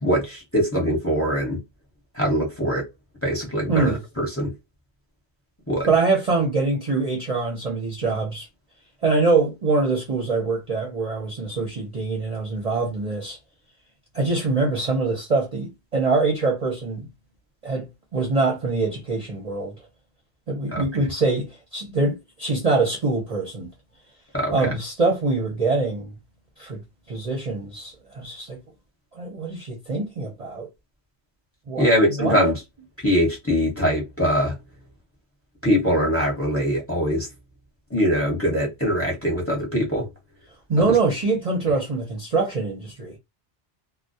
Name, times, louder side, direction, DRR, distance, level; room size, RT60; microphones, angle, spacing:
voice 1, 0.0-1.6 2.1-2.9 3.2-4.5 5.7-5.9 20.7-20.8 24.3-24.7 31.8-32.6 33.0-34.5 35.6-37.3 37.9-40.1 40.8-40.9, equal, 15° left, 0.9 m, -22 dB
voice 2, 3.7-4.0 5.9-8.5 9.0-13.4 14.1-17.1 17.6-17.9 18.1-19.8 20.5-23.7 24.5-26.1 26.6-26.8 27.1-28.6 29.1-30.7 31.7-31.9 32.2-32.5 40.7-43.2, right 3 dB, 40° right, 0.6 m, -24 dB
2.2 x 2.1 x 2.6 m
omnidirectional pair, 1.2 m